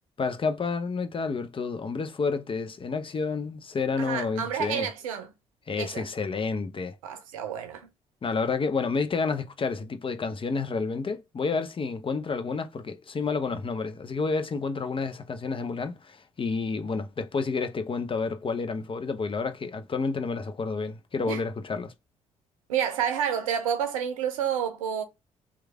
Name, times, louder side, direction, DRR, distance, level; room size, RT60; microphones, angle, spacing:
voice 1, 0.2-4.9 5.7-7.0 8.2-21.9, left 4 dB, 30° left, 0.6 m, -30 dB
voice 2, 4.0-5.3 5.8-6.1 7.0-7.9 21.3-21.4 22.7-25.0, right 8 dB, 90° right, 0.6 m, -29 dB
3.1 x 2.3 x 3.4 m
hypercardioid pair, 50°, 17 cm